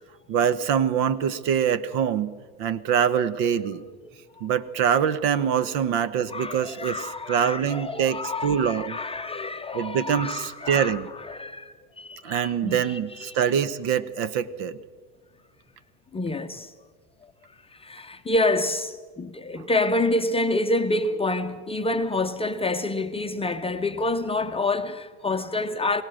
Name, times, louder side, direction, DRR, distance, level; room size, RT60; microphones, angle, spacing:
voice 1, 0.3-2.3 2.6-3.8 4.4-9.0 9.7-11.1 12.2-14.8 19.6-19.7, right 8 dB, 55° right, 1.1 m, -24 dB
voice 2, 4.0-4.5 5.6-5.7 6.3-13.4 16.1-16.7 17.4-26.0, left 2 dB, 15° left, 0.7 m, -28 dB
22.5 x 17.5 x 6.4 m
hypercardioid pair, 105°, 44 cm